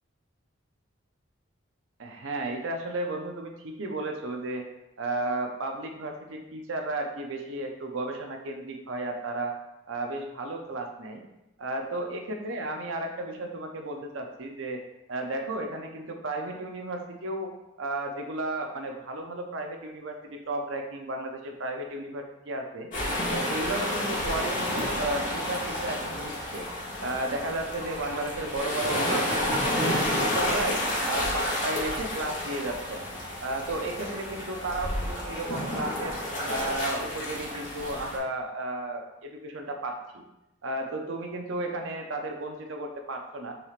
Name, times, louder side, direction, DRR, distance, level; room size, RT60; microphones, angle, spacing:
voice 1, 2.0-4.7 5.0-9.5 9.9-11.2 11.6-14.8 15.1-17.5 17.8-22.9 23.3-26.7 27.0-30.8 31.1-33.0 33.4-36.2 36.5-40.2 40.6-43.5, right 2 dB, 75° right, 3 dB, 0.6 m, -33 dB
sound 1, 22.9-38.2, left 1 dB, 40° left, 1.0 m, -30 dB
5.9 x 3.2 x 2.4 m, 0.92 s
head